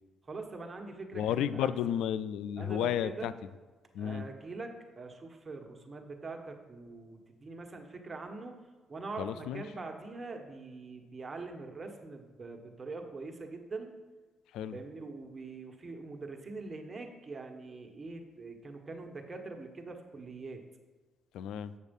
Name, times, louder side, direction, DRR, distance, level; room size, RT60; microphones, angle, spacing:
voice 1, 0.3-1.7 2.6-3.3 4.0-8.5 8.9-13.9 14.7-20.6, right 3 dB, 30° right, 3 dB, 1.3 m, -43 dB
voice 2, 1.1-3.3 3.9-4.2 9.2-9.6 14.5-14.8 21.3-21.7, left 10 dB, 85° left, 15 dB, 0.3 m, -32 dB
7.9 x 6.6 x 5.3 m, 1.4 s
cardioid pair, 90°, 0 cm